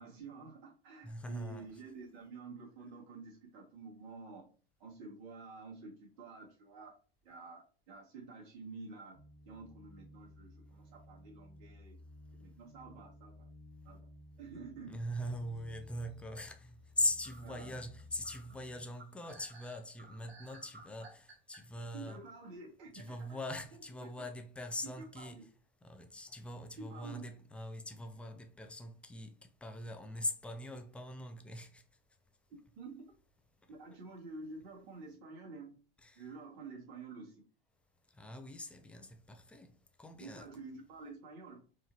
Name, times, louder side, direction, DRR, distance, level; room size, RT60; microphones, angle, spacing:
voice 1, 0.0-4.5 4.8-6.9 7.2-9.2 9.5-12.0 12.3-13.5 13.8-14.1 14.4-15.0 17.4-17.7 21.9-23.4 24.0-24.3 25.0-25.4 26.8-27.2 32.8-33.1 33.7-35.8 36.2-37.4 40.2-41.6, right 3 dB, 50° right, 2.0 m, -49 dB
voice 2, 1.0-1.8 14.9-22.2 22.9-25.5 25.8-31.8 36.0-36.2 38.1-40.5, left 1 dB, 5° left, 0.4 m, -41 dB
sound 1, 9.1-18.9, left 1 dB, 40° left, 1.2 m, -56 dB
sound 2, 14.6-15.3 15.8-16.4 16.8-16.9 17.2-21.6, right 3 dB, 85° right, 1.0 m, -57 dB
4.5 x 3.2 x 2.8 m
figure-of-eight pair, 90°, 31 cm